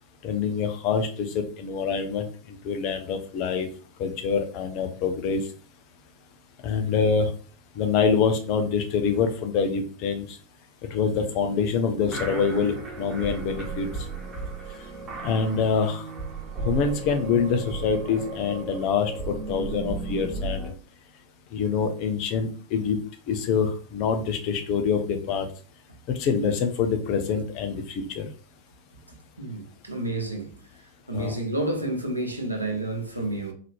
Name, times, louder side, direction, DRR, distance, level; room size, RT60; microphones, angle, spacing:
voice 1, 0.2-3.7 4.0-5.4 6.6-7.3 7.8-10.4 10.9-13.9 15.2-16.1 16.6-20.7 21.5-23.0 23.3-25.5 26.1-28.3 31.1-31.3, left 6 dB, 40° left, 0.7 m, -25 dB
sound 1, 12.0-20.7, right 3 dB, 25° right, 1.2 m, -35 dB
voice 2, 29.4-30.5 31.1-33.5, right 2 dB, 85° right, 0.9 m, -30 dB
4.0 x 2.8 x 3.2 m
figure-of-eight pair, 90°, 0 cm